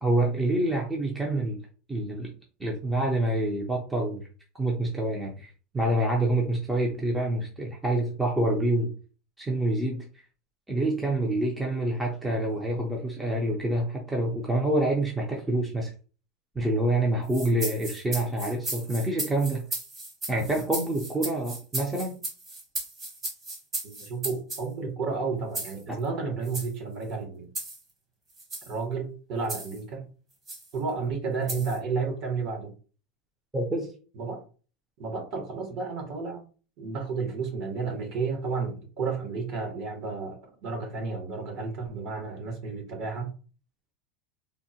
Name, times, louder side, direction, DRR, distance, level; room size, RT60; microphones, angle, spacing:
voice 1, 0.0-1.6 1.9-2.3 2.6-4.3 4.5-8.9 9.4-10.1 10.7-15.9 16.5-19.6 20.3-22.2 33.5-33.9, right 1 dB, 5° right, 0.5 m, -27 dB
sound 1, 17.3-24.7 25.5-25.8 26.4-26.7 27.5-27.8 28.4-28.7 29.5-29.8 30.5-30.7 31.5-31.8, right 2 dB, 25° right, 1.1 m, -35 dB
voice 2, 23.8-27.5 28.7-30.1 30.7-32.7 34.1-34.4 35.0-36.5 36.8-43.3, right 4 dB, 45° right, 1.0 m, -32 dB
3.5 x 2.1 x 2.7 m
supercardioid pair, 160°, 0 cm